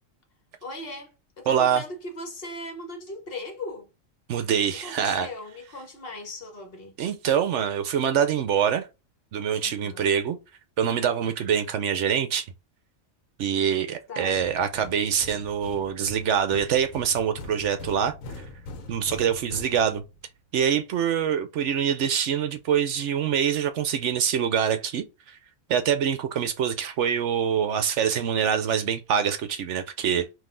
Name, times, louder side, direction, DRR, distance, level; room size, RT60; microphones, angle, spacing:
voice 1, 0.6-3.9 4.8-6.9 9.6-10.1 14.1-14.4, left 2 dB, 50° left, 1.1 m, -38 dB
voice 2, 1.5-1.8 4.3-5.3 7.0-8.9 9.3-10.4 10.8-12.5 13.4-18.4 18.9-20.0 20.5-25.4 25.7-30.3, right 8 dB, 70° right, 0.9 m, -25 dB
sound 1, 14.3-20.3, left 2 dB, 80° left, 1.2 m, -42 dB
3.9 x 2.7 x 3.7 m
omnidirectional pair, 1.4 m